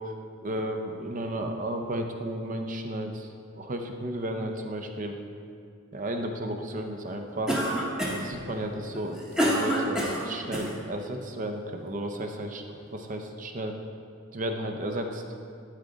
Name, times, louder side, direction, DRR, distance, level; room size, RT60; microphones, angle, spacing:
voice 1, 0.4-5.2 5.9-13.8 14.3-15.2, right 1 dB, 35° right, 4 dB, 0.6 m, -33 dB
Cough, 7.5-8.4 8.9-10.7, equal, 5° right, 0.8 m, -27 dB
11.5 x 5.0 x 3.9 m, 2.3 s
head